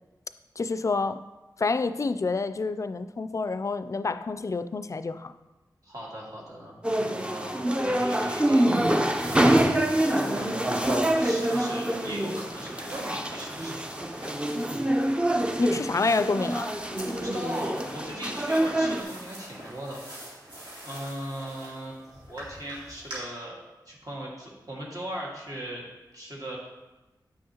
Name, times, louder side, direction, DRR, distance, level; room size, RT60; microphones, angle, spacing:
voice 1, 0.6-1.2 1.6-5.3 15.6-16.7, left 3 dB, 40° left, 12 dB, 0.3 m, -28 dB
voice 2, 5.8-6.8 7.0-8.6 9.2-14.0 17.1-20.0 20.8-23.6 23.9-25.8 26.1-26.6, equal, 55° right, -4 dB, 1.9 m, -39 dB
sound 1, 6.8-19.0, right 1 dB, 15° right, 0.6 m, -26 dB
sound 2, 8.0-23.2, right 1 dB, 75° right, 2.3 m, -43 dB
7.3 x 6.2 x 2.9 m, 1.1 s
cardioid pair, 50°, 8 cm